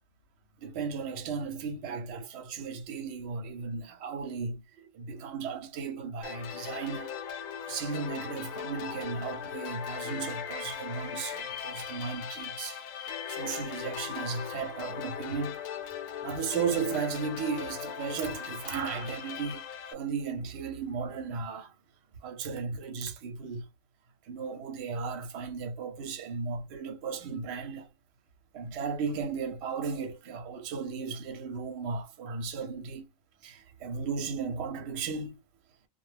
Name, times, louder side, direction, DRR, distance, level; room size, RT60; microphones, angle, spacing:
voice 1, 0.6-7.1 7.6-15.6 16.2-21.7 22.2-23.7 24.2-27.9 28.5-33.1 33.4-35.4, right 5 dB, 60° right, 0.8 m, -35 dB
MF Stars waves, 6.2-19.9, left 8 dB, 75° left, 1.0 m, -39 dB
2.3 x 2.0 x 3.2 m
omnidirectional pair, 1.5 m